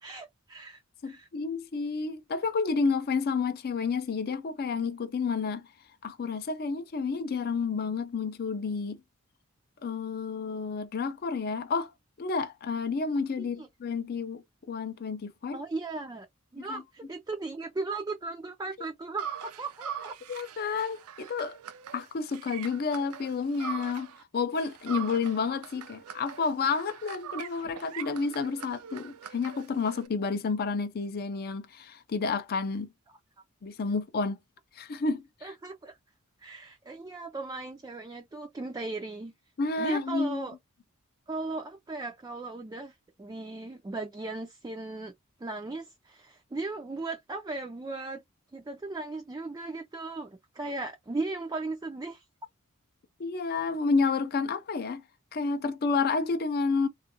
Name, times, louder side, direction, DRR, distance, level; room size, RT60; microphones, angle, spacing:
voice 1, 0.0-1.3 13.6-13.7 15.5-16.3 16.5-19.3 19.6-20.2 35.4-36.0 36.4-39.3 39.8-40.5 41.3-45.1 45.4-48.2 48.5-52.2, right 3 dB, 15° right, 0.3 m, -37 dB
voice 2, 1.0-5.7 6.0-9.0 9.8-11.9 12.2-15.6 16.7-16.8 20.3-21.6 21.9-24.1 24.3-32.9 33.6-34.4 34.7-35.5 39.6-40.5 53.2-55.0 55.3-56.9, left 4 dB, 45° left, 0.5 m, -30 dB
sound 1, 19.2-24.2 24.5-30.1, right 8 dB, 85° right, 0.5 m, -42 dB
3.4 x 2.4 x 2.7 m
head